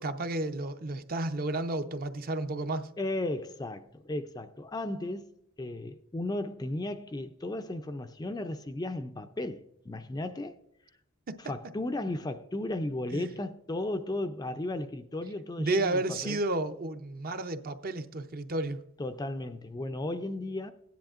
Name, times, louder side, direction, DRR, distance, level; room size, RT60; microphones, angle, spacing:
voice 1, 0.0-2.9 11.3-11.4 13.1-13.3 15.6-18.8, right 2 dB, 40° right, 0.6 m, -32 dB
voice 2, 3.0-5.3 5.6-10.6 11.4-16.4 19.0-20.7, left 1 dB, 15° left, 0.4 m, -35 dB
16.5 x 10.5 x 2.5 m
head